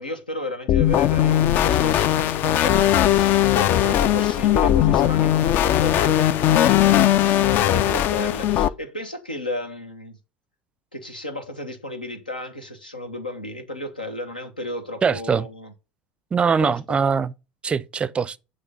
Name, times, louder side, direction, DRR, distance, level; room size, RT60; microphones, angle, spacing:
voice 1, 0.0-10.2 10.9-15.7 16.6-17.0, left 1 dB, 90° left, 0.9 m, -33 dB
sound 1, 0.7-8.7, left 12 dB, 50° left, 0.4 m, -19 dB
voice 2, 15.0-15.5 16.3-17.3 17.6-18.4, right 6 dB, 25° right, 0.4 m, -22 dB
8.2 x 3.1 x 5.5 m
figure-of-eight pair, 70°, 4 cm